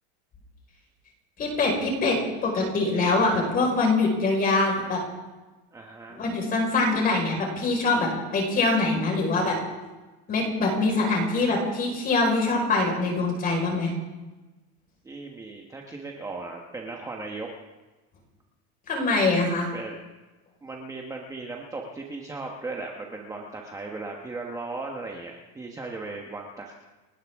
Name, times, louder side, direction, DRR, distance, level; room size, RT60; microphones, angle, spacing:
voice 1, 1.4-5.0 6.1-9.5 10.3-13.9 18.9-19.7, left 3 dB, 25° left, 1 dB, 5.0 m, -24 dB
voice 2, 5.7-6.2 15.0-17.5 19.7-20.0 20.6-26.7, right 3 dB, 10° right, 0 dB, 1.2 m, -37 dB
29.5 x 13.0 x 3.7 m, 1.2 s
supercardioid pair, 160°, 33 cm